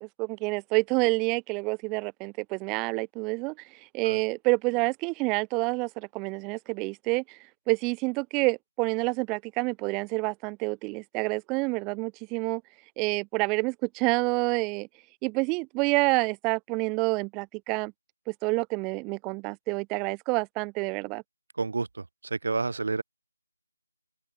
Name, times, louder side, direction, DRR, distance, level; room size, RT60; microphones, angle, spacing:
voice 1, 0.2-3.5 3.9-7.4 7.7-12.6 13.0-14.9 15.2-17.9 18.3-21.2, right 28 dB, 10° right, 6.0 m, -28 dB
voice 2, 21.6-21.9 22.3-23.0, right 3 dB, 55° right, 6.2 m, -28 dB
open air
figure-of-eight pair, 165°, 0 cm